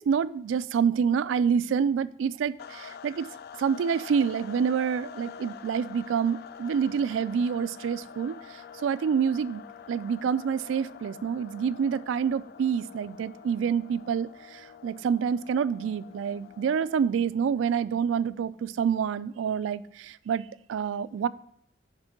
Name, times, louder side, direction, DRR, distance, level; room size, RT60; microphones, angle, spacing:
voice 1, 0.0-3.3 3.6-8.4 8.8-9.6 9.9-21.3, right 7 dB, 90° right, 16 dB, 0.3 m, -27 dB
sound 1, 2.6-17.3, left 7 dB, 55° left, 0.3 m, -46 dB
6.6 x 3.7 x 5.9 m, 0.70 s
head